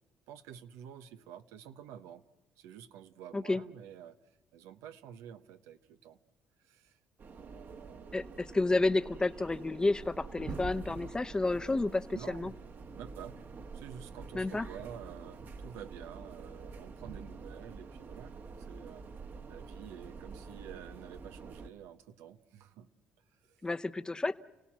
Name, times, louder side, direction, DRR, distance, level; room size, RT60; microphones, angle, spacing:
voice 1, 0.3-2.2 2.6-4.2 4.5-6.2 6.6-7.0 7.3-8.2 12.1-12.6 13.0-13.4 13.7-19.1 19.5-22.9 23.5-23.7, right 9 dB, 85° right, 10 dB, 1.0 m, -49 dB
sound 1, 7.2-21.7, right 4 dB, 50° right, 1.6 m, -46 dB
voice 2, 8.1-12.5 14.3-14.7 23.6-24.4, left 2 dB, 15° left, 12 dB, 0.9 m, -30 dB
29.5 x 17.5 x 7.5 m, 1.1 s
supercardioid pair, 85°, 5 cm